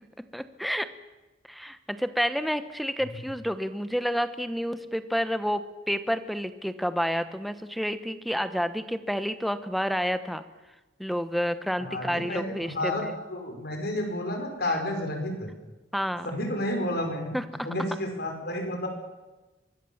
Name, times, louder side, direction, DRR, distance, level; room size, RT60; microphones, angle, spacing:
voice 1, 0.3-0.9 1.5-10.4 11.0-12.9 15.9-16.3 17.3-17.4, equal, ahead, 11 dB, 1.0 m, -29 dB
voice 2, 11.8-15.5 16.2-17.3 17.6-18.9, left 1 dB, 60° left, 4 dB, 5.4 m, -31 dB
24.5 x 21.0 x 7.2 m, 1.1 s
head